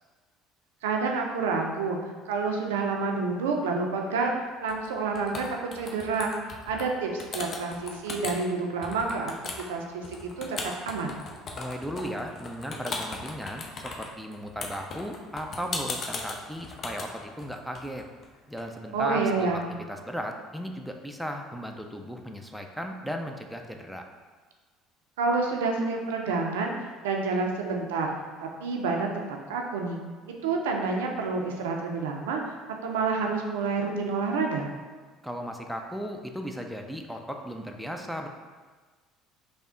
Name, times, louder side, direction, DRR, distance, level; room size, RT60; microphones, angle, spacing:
voice 1, 0.8-2.0 2.3-4.3 4.6-6.3 6.7-11.2 18.9-19.7 25.2-28.1 28.4-29.1 29.5-30.0 30.4-32.6 32.8-34.7, right 4 dB, 85° right, 1 dB, 0.4 m, -28 dB
sound 1, 4.7-4.9 5.1-6.9 7.2-8.4 8.8-18.6, left 3 dB, 50° left, 0.5 m, -37 dB
voice 2, 11.5-18.0 18.5-19.6 19.9-24.0 35.2-38.3, equal, ahead, 3 dB, 0.4 m, -36 dB
3.4 x 2.1 x 3.7 m, 1.4 s
hypercardioid pair, 65°, 0 cm